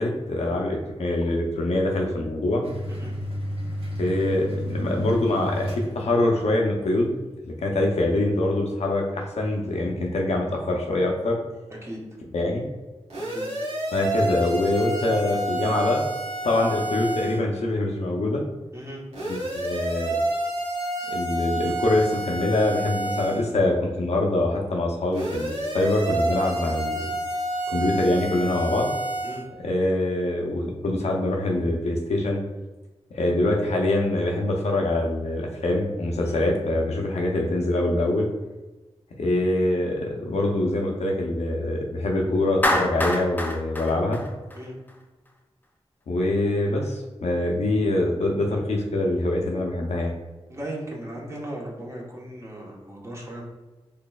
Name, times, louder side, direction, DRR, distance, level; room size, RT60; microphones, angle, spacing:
voice 1, 0.0-2.6 4.0-7.1 7.5-11.4 12.3-12.7 13.9-16.0 16.4-18.4 19.2-20.2 21.1-27.1 27.7-28.9 29.6-32.4 33.1-38.3 39.2-44.2 46.1-50.1, left 1 dB, 80° left, 0 dB, 0.6 m, -24 dB
sound 1, 2.6-6.5, equal, 60° right, 1.0 m, -31 dB
voice 2, 11.8-12.2 13.2-13.5 18.7-19.0 29.2-29.4 36.2-36.4 44.5-44.7 50.5-53.4, right 1 dB, 25° right, -3 dB, 1.0 m, -37 dB
sound 2, 13.1-17.4 19.1-23.4 25.1-29.4, right 1 dB, 90° right, 1.1 m, -29 dB
Clapping, 42.6-44.9, left 1 dB, 15° left, 0.4 m, -26 dB
4.0 x 3.2 x 2.3 m, 1.1 s
cardioid pair, 60°, 11 cm